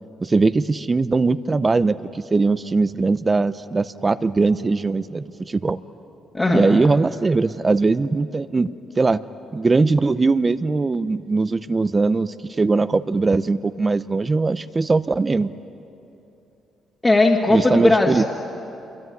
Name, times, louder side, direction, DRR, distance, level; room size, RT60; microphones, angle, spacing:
voice 1, 0.2-5.8 6.5-8.7 9.0-9.2 9.5-15.5 17.5-18.2, right 3 dB, 25° right, 13 dB, 0.7 m, -20 dB
voice 2, 6.3-6.8 17.0-18.2, left 2 dB, 20° left, -2 dB, 2.2 m, -18 dB
26.5 x 23.0 x 9.5 m, 2.8 s
cardioid pair, 90°, 0 cm